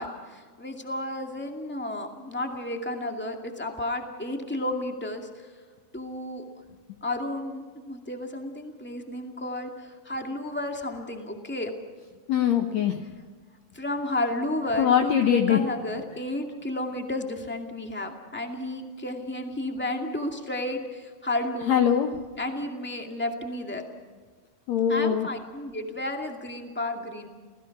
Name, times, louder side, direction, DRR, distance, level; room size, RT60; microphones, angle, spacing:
voice 1, 0.0-5.5 5.9-6.4 7.0-11.7 13.7-21.7 22.4-23.8 24.9-27.3, left 1 dB, 5° left, 3 dB, 0.9 m, -32 dB
voice 2, 12.3-13.1 14.8-15.6 21.7-22.2 24.7-25.3, left 9 dB, 80° left, 6 dB, 1.5 m, -22 dB
29.5 x 17.0 x 6.0 m, 1.5 s
omnidirectional pair, 4.6 m